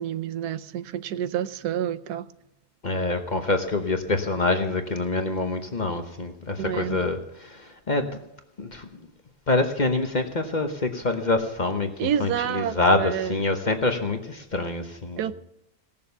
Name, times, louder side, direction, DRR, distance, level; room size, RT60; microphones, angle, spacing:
voice 1, 0.0-2.3 6.6-7.0 12.0-13.4 15.2-15.3, right 10 dB, 85° right, 14 dB, 1.2 m, -28 dB
voice 2, 2.8-8.2 8.6-8.9 9.5-15.3, left 2 dB, 35° left, 6 dB, 1.0 m, -26 dB
17.5 x 7.0 x 6.8 m, 0.85 s
omnidirectional pair, 1.6 m